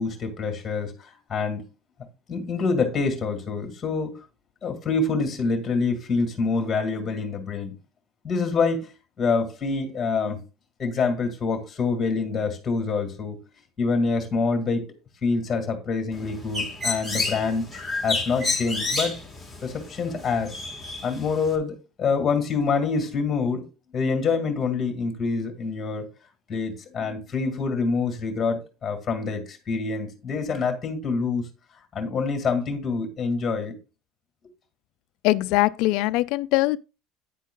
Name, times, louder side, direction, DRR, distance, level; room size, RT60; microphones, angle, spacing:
voice 1, 0.0-1.6 2.3-4.1 4.6-7.8 8.2-8.9 9.2-10.4 10.8-13.4 13.8-14.9 15.2-17.7 18.0-19.2 19.6-20.6 21.0-23.7 23.9-26.1 26.5-31.5 31.9-33.7, left 4 dB, 15° left, 2.1 m, -26 dB
Bird, 16.1-21.6, left 3 dB, ahead, 1.6 m, -30 dB
voice 2, 35.2-36.8, left 19 dB, 60° left, 0.4 m, -22 dB
10.0 x 9.2 x 2.3 m
cardioid pair, 180°, 0 cm